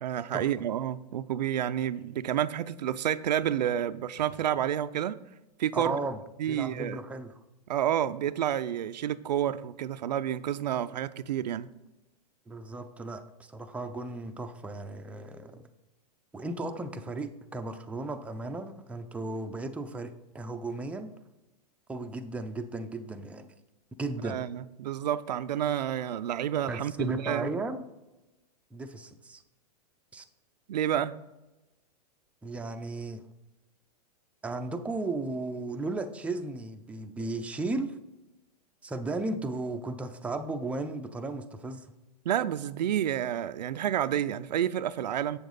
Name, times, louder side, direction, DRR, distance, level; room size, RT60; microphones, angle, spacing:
voice 1, 0.0-5.2 5.6-6.0 6.4-7.0 7.7-11.7 24.2-27.6 30.7-31.1 42.3-45.4, right 10 dB, 85° right, 0.4 m, -29 dB
voice 2, 5.7-6.2 6.5-7.4 12.5-15.6 16.3-21.1 21.9-23.5 24.0-24.4 26.7-27.8 28.7-29.4 30.1-30.2 32.4-33.2 34.4-37.9 38.8-41.8, right 2 dB, 5° right, 0.5 m, -35 dB
7.2 x 6.8 x 4.0 m
hypercardioid pair, 115°, 21 cm